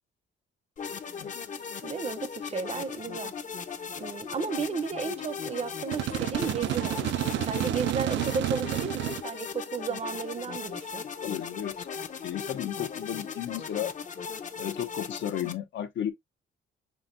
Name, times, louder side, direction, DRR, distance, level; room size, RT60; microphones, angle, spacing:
sound 1, 0.8-15.5, left 6 dB, 40° left, 0.7 m, -38 dB
voice 1, 1.8-3.3 4.0-11.1, right 5 dB, 30° right, 0.6 m, -34 dB
sound 2, 5.9-9.2, right 14 dB, 70° right, 0.4 m, -30 dB
voice 2, 11.2-11.9 12.2-13.9 14.6-16.1, left 10 dB, 70° left, 0.8 m, -34 dB
5.8 x 2.7 x 2.5 m
cardioid pair, 90°, 20 cm